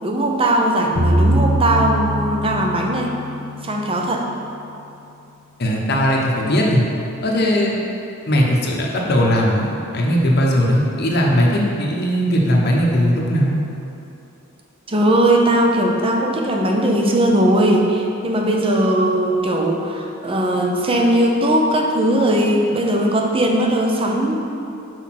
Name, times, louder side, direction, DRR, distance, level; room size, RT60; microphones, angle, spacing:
voice 1, 0.0-3.2 3.6-4.3 14.9-24.3, right 1 dB, 25° right, 1 dB, 0.7 m, -18 dB
sound 1, 1.0-4.1, right 1 dB, 70° left, 1.2 m, -21 dB
voice 2, 5.6-6.8 7.2-7.8 8.3-13.6, equal, 50° left, -2 dB, 0.9 m, -18 dB
6.3 x 4.8 x 5.9 m, 2.7 s
head